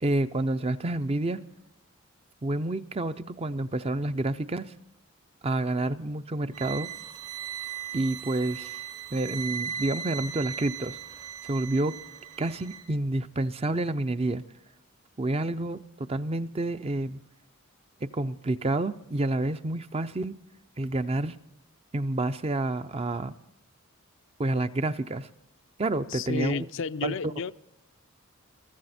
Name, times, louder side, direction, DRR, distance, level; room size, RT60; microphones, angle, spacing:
voice 1, 0.0-1.4 2.4-4.7 5.4-6.9 7.9-8.8 9.1-11.0 11.4-12.0 12.4-14.4 15.2-17.2 18.0-20.4 20.8-21.4 21.9-23.3 24.4-25.3 25.8-26.7 27.0-27.3, right 2 dB, 30° right, 0.5 m, -29 dB
sound 1, 6.5-12.9, right 8 dB, 75° right, 3.6 m, -38 dB
voice 2, 26.1-27.5, left 5 dB, 60° left, 0.5 m, -31 dB
22.5 x 14.5 x 4.2 m
head